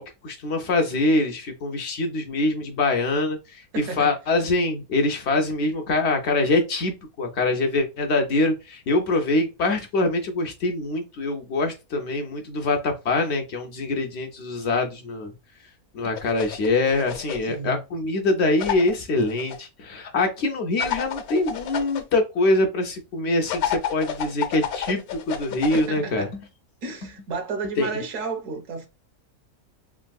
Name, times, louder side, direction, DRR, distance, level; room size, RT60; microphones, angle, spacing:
voice 1, 0.0-15.3 15.9-26.3 27.8-27.9, left 2 dB, 65° left, 0.7 m, -24 dB
voice 2, 3.7-4.1 17.4-17.8 25.7-26.3 26.8-28.9, right 4 dB, 65° right, 1.1 m, -32 dB
sound 1, 16.2-17.5 18.6-19.6 20.8-22.0 23.5-25.9, left 9 dB, 80° left, 1.1 m, -30 dB
3.5 x 2.5 x 2.2 m
omnidirectional pair, 1.6 m